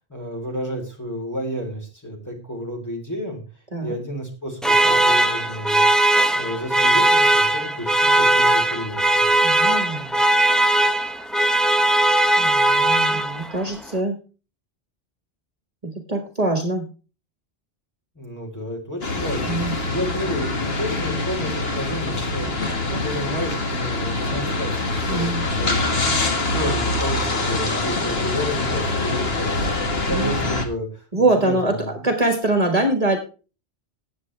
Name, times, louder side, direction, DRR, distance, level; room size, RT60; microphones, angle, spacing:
voice 1, 0.1-3.4 3.8-5.8 6.4-9.3 18.2-31.0 31.3-32.1, equal, 15° left, 0 dB, 3.4 m, -31 dB
sound 1, 4.6-13.6, right 1 dB, ahead, 0.6 m, -18 dB
voice 2, 9.4-10.1 12.4-14.2 15.8-16.8 19.5-19.8 25.1-25.4 30.1-30.4 31.1-31.7 32.0-33.2, right 2 dB, 35° right, 4 dB, 1.6 m, -23 dB
sound 2, 19.0-30.7, left 2 dB, 70° left, 1.9 m, -24 dB
18.5 x 7.5 x 3.3 m, 0.35 s
omnidirectional pair, 1.1 m